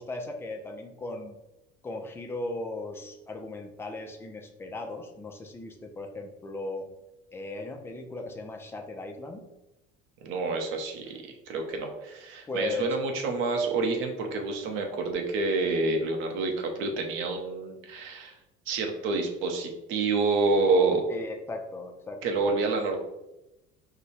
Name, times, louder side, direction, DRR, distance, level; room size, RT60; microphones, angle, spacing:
voice 1, 0.0-1.4 1.8-6.9 7.3-9.4 12.5-12.9 21.1-22.2, left 2 dB, 10° left, 3 dB, 0.6 m, -37 dB
voice 2, 10.2-11.2 11.5-18.3 18.7-21.0 22.2-23.0, right 3 dB, 75° right, 3 dB, 0.9 m, -28 dB
4.9 x 2.3 x 4.2 m, 0.94 s
cardioid pair, 130°, 21 cm